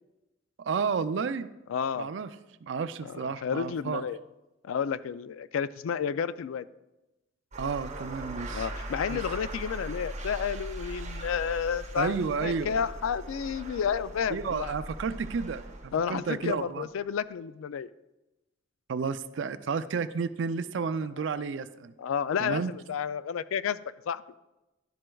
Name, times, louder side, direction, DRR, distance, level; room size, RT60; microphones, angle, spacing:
voice 1, 0.6-1.5 2.0-2.3 2.6-4.0 7.6-8.7 9.1-9.2 12.0-12.8 14.3-16.9 18.9-21.9 22.4-22.7, right 5 dB, 65° right, 13 dB, 0.4 m, -31 dB
voice 2, 1.7-2.1 3.0-4.2 4.6-6.6 8.5-14.7 15.9-17.9 22.0-23.8 24.1-24.2, left 7 dB, 85° left, 15 dB, 0.3 m, -31 dB
sound 1, 7.5-16.1, right 1 dB, 35° right, 1.0 m, -40 dB
11.0 x 7.6 x 2.3 m, 0.98 s
head